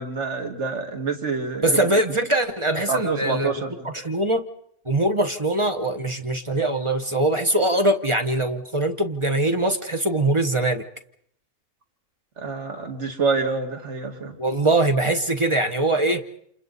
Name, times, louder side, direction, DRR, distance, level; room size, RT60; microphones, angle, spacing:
voice 1, 0.0-1.8 2.9-3.9 12.4-14.4, right 4 dB, 50° right, 4 dB, 2.4 m, -27 dB
voice 2, 1.6-3.5 3.8-4.4 4.9-10.8 14.4-16.2, right 1 dB, 25° right, 7 dB, 0.9 m, -22 dB
29.0 x 28.0 x 4.1 m, 0.68 s
omnidirectional pair, 1.5 m